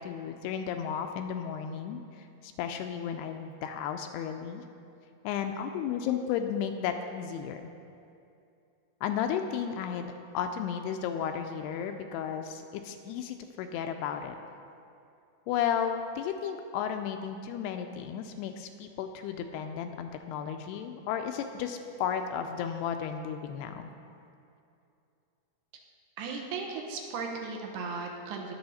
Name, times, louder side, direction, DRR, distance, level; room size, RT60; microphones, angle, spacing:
voice 1, 0.0-4.6 5.2-7.7 9.0-14.4 15.5-23.9, left 8 dB, 80° left, 6 dB, 2.5 m, -34 dB
voice 2, 26.2-28.5, right 4 dB, 75° right, 1 dB, 2.9 m, -36 dB
20.0 x 7.1 x 4.2 m, 2.6 s
omnidirectional pair, 4.9 m